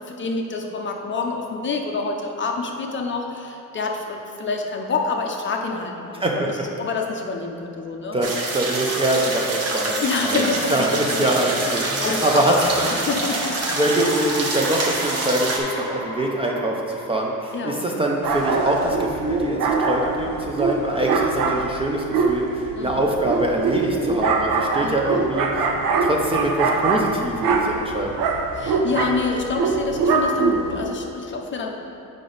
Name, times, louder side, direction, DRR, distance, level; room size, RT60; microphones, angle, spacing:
voice 1, 0.0-8.2 10.0-11.2 12.0-13.8 17.5-17.8 22.7-23.0 24.8-25.3 28.5-31.7, left 4 dB, 35° left, 2 dB, 0.5 m, -27 dB
voice 2, 6.2-6.6 8.1-10.4 10.7-13.0 13.7-25.7 26.0-28.3, right 1 dB, 15° right, -1 dB, 0.5 m, -24 dB
sound 1, 8.2-15.6, right 2 dB, 45° right, 0.9 m, -27 dB
sound 2, 11.2-18.1, left 1 dB, 5° left, 1.0 m, -34 dB
sound 3, 18.2-30.8, right 4 dB, 85° right, 0.7 m, -23 dB
7.5 x 5.1 x 3.9 m, 2.9 s
cardioid pair, 160°, 34 cm